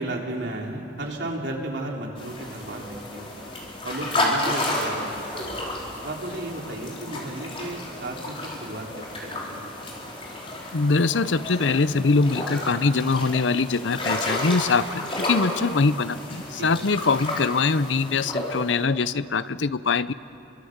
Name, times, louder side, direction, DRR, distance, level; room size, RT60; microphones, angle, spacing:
voice 1, 0.0-3.3 3.8-5.6 6.0-9.7 16.6-16.9, right 1 dB, 70° right, 0 dB, 3.8 m, -34 dB
sound 1, 2.2-18.8, left 1 dB, 30° left, 4.5 m, -31 dB
voice 2, 10.7-20.1, left 4 dB, 90° left, 15 dB, 0.7 m, -23 dB
29.0 x 24.0 x 8.0 m, 2.8 s
head